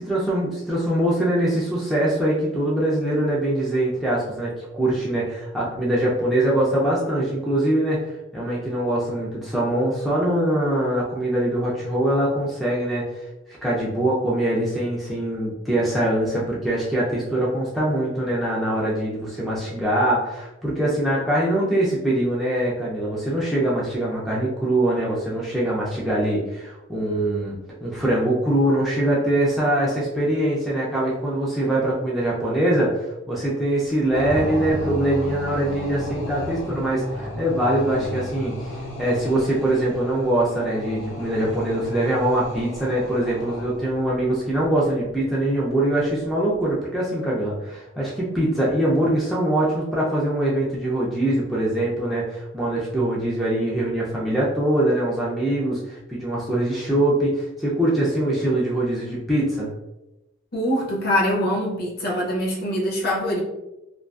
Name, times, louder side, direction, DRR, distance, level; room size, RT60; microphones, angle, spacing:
voice 1, 0.0-8.0 8.3-13.3 13.6-32.9 33.3-59.7, right 1 dB, ahead, -7 dB, 0.4 m, -23 dB
sound 1, 34.1-44.0, left 1 dB, 90° left, 0.9 m, -33 dB
voice 2, 60.5-63.4, equal, 45° left, -2 dB, 0.6 m, -23 dB
2.4 x 2.3 x 2.3 m, 0.96 s
head